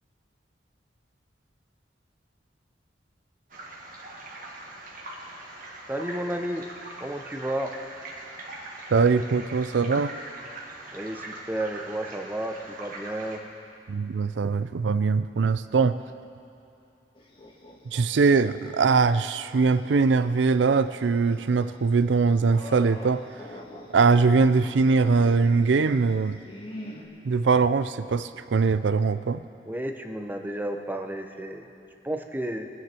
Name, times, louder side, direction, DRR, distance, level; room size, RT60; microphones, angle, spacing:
sound 1, 3.5-13.4, right 2 dB, 50° right, 1.9 m, -41 dB
voice 1, 5.9-6.7 7.0-7.7 10.9-13.4 29.6-31.7 32.0-32.7, right 1 dB, 10° right, 4 dB, 0.8 m, -32 dB
voice 2, 8.9-10.2 13.9-16.0 17.9-23.2 23.9-26.4 27.3-29.4, right 4 dB, 80° right, 13 dB, 0.4 m, -22 dB
sound 2, 17.1-18.8 19.2-19.3 20.3-27.1, left 1 dB, 30° left, 1.6 m, -44 dB
24.5 x 9.7 x 4.4 m, 2.7 s
head